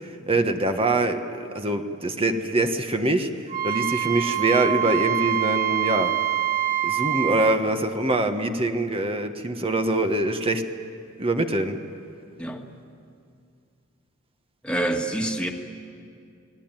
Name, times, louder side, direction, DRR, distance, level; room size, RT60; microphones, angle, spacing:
voice 1, 0.3-3.3 3.6-6.1 6.8-10.6 11.2-11.8, right 2 dB, 25° right, 6 dB, 1.4 m, -24 dB
Wind instrument woodwind instrument, 3.5-7.6, right 12 dB, 40° right, 0.9 m, -25 dB
voice 2, 14.6-15.5, right 1 dB, 5° left, 2 dB, 1.9 m, -27 dB
29.0 x 19.5 x 9.1 m, 2.4 s
head